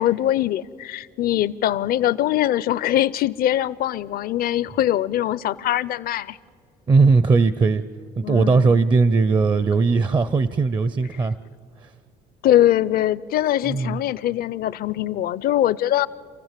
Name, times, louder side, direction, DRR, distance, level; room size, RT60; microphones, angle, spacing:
voice 1, 0.0-6.4 8.2-8.8 12.4-16.1, left 12 dB, 65° left, 0.5 m, -22 dB
voice 2, 6.9-7.8 8.2-11.4 11.8-11.9 13.7-14.0, right 4 dB, 25° right, 0.5 m, -18 dB
27.5 x 15.5 x 7.5 m
cardioid pair, 110°, 17 cm